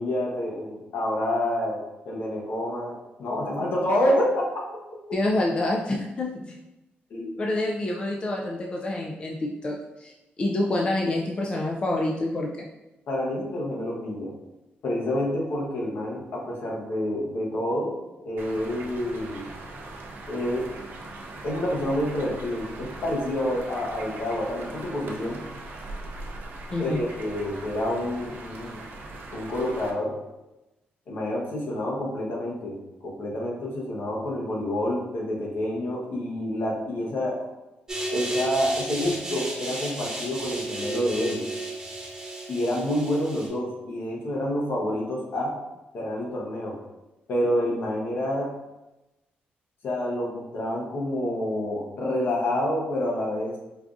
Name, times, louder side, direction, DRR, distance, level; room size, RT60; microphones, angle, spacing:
voice 1, 0.0-4.5 7.1-7.3 13.1-14.3 14.8-18.0 18.2-19.5 20.3-20.6 21.4-25.4 26.8-28.8 29.3-30.2 31.1-37.5 38.1-41.4 42.5-45.5 45.9-46.8 47.3-48.5 49.8-53.5, left 1 dB, 70° left, -2 dB, 0.9 m, -28 dB
voice 2, 5.1-6.6 7.4-10.1 10.4-12.7 26.7-27.0, left 1 dB, 30° left, -1 dB, 0.3 m, -27 dB
sound 1, 18.4-29.9, right 2 dB, 70° right, 0.5 m, -40 dB
sound 2, 37.9-43.5, right 1 dB, 20° right, 0.9 m, -33 dB
4.6 x 2.4 x 2.5 m, 0.99 s
cardioid pair, 135°, 4 cm